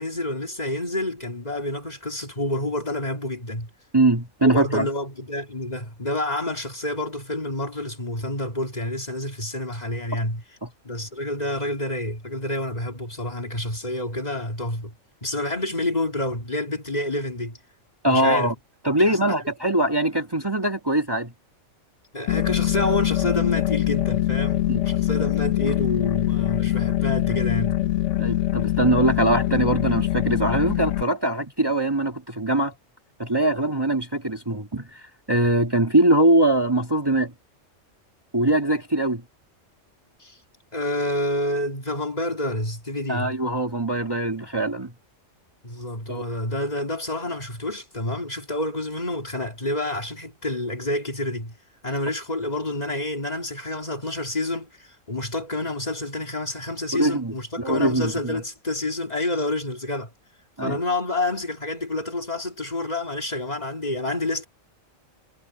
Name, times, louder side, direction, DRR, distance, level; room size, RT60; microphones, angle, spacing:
voice 1, 0.0-3.7 4.4-10.4 10.8-14.9 15.2-17.6 18.1-18.5 19.1-19.3 22.1-27.8 40.2-40.4 40.7-43.4 45.6-51.5 51.8-60.1 60.6-64.5, left 1 dB, 30° left, 2.6 m, -28 dB
voice 2, 3.9-4.9 10.6-10.7 18.0-18.5 18.8-21.3 24.7-24.8 28.2-32.7 33.2-37.3 38.3-39.2 43.1-44.9 46.1-46.2 56.9-58.4 60.6-60.8, right 1 dB, 20° right, 1.7 m, -22 dB
sound 1, 22.3-31.0, left 14 dB, 75° left, 0.9 m, -23 dB
omnidirectional pair, 1.3 m